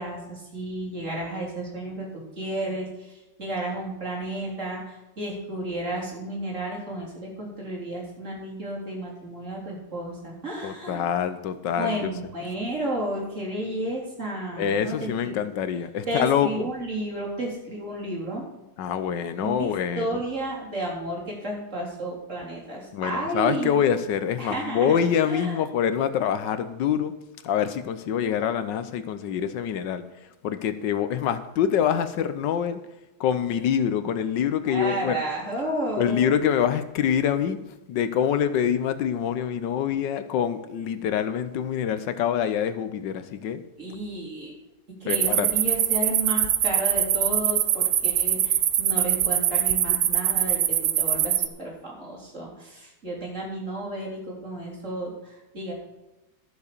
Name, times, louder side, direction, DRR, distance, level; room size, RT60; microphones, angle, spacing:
voice 1, 0.0-11.1 11.8-15.4 16.1-18.4 19.4-23.8 24.4-25.0 25.2-25.6 34.7-36.4 43.8-44.5 45.0-55.7, right 1 dB, 45° right, -3 dB, 4.0 m, -32 dB
voice 2, 10.6-12.1 14.6-16.7 18.8-20.2 22.9-27.1 27.4-30.0 30.4-32.8 33.2-35.2 36.0-37.6 37.9-43.6 45.1-45.5, left 8 dB, 85° left, 11 dB, 1.5 m, -25 dB
sound 1, 45.1-51.5, right 11 dB, 65° right, 1.1 m, -23 dB
13.5 x 7.0 x 6.7 m, 1.0 s
omnidirectional pair, 1.9 m